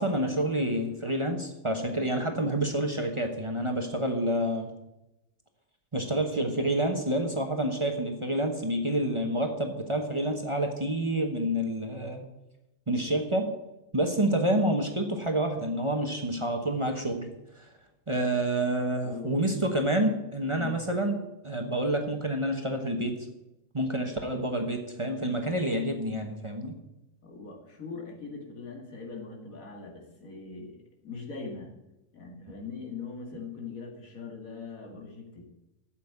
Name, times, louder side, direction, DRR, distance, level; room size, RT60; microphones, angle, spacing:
voice 1, 0.0-4.7 5.9-12.3 12.9-13.5 13.9-17.3 17.5-17.7 18.1-21.2 21.4-23.1 23.7-26.8, right 1 dB, 25° right, 4 dB, 1.1 m, -28 dB
voice 2, 19.0-19.4 20.5-20.8 27.2-31.7 32.1-35.5, left 4 dB, 80° left, 1 dB, 2.5 m, -41 dB
8.4 x 7.5 x 8.5 m, 0.94 s
omnidirectional pair, 1.4 m